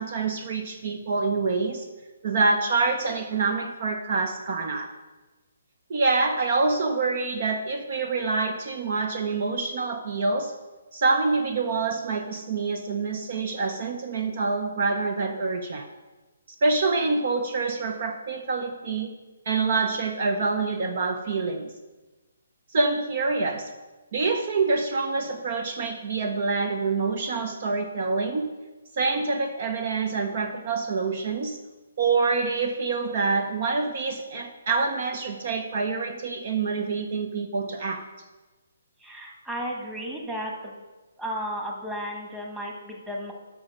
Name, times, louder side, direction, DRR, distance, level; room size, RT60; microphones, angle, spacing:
voice 1, 0.0-1.8 2.2-4.9 5.9-10.5 10.9-15.9 16.6-19.1 19.5-21.7 22.7-23.7 24.1-28.5 28.9-31.6 32.0-38.0, right 4 dB, 50° right, 6 dB, 0.8 m, -26 dB
voice 2, 39.0-40.7 41.2-43.3, equal, 5° right, -2 dB, 1.4 m, -34 dB
7.1 x 6.1 x 6.5 m, 1.2 s
hypercardioid pair, 145°, 0 cm